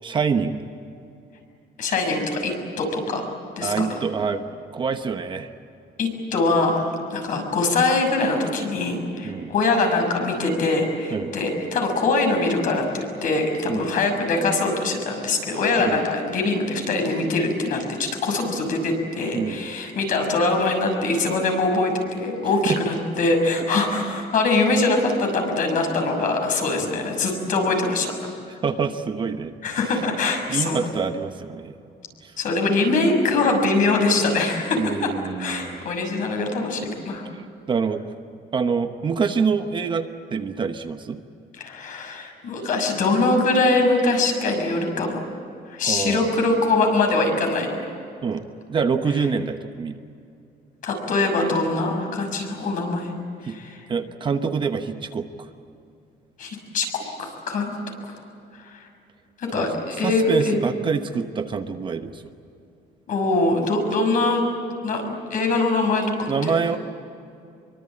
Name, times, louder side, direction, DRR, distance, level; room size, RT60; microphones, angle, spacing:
voice 1, 0.0-0.6 3.6-5.5 9.2-9.5 11.1-11.3 13.7-13.9 15.8-16.0 19.3-19.6 22.6-22.8 28.5-29.5 29.9-30.0 30.5-31.7 32.2-32.3 34.8-35.8 37.3-37.4 37.7-38.0 38.5-41.2 45.8-46.3 48.2-48.4 48.7-50.0 53.4-53.6 53.9-55.3 59.5-59.7 60.0-62.2 66.3-66.8, right 5 dB, 30° right, 7 dB, 1.0 m, -26 dB
voice 2, 1.8-3.2 3.6-4.0 6.0-28.1 29.6-31.0 32.4-35.1 35.4-37.2 41.6-45.2 45.7-47.7 49.0-49.3 50.8-53.1 53.4-53.8 56.4-57.7 58.1-58.2 58.6-58.8 59.4-60.6 63.1-64.4 64.8-66.8, left 3 dB, 50° left, 3 dB, 6.4 m, -23 dB
26.0 x 24.0 x 8.8 m, 2.6 s
cardioid pair, 175°, 17 cm